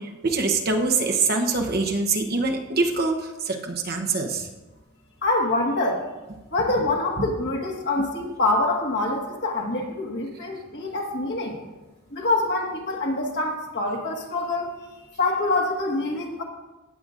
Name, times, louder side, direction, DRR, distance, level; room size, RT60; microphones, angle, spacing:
voice 1, 0.0-4.5 6.8-6.9, right 3 dB, 45° right, 2 dB, 1.0 m, -24 dB
voice 2, 5.2-6.0 6.5-11.6 12.1-14.7 15.2-16.4, left 2 dB, 55° left, -1 dB, 1.7 m, -25 dB
17.0 x 7.8 x 2.6 m, 1.1 s
head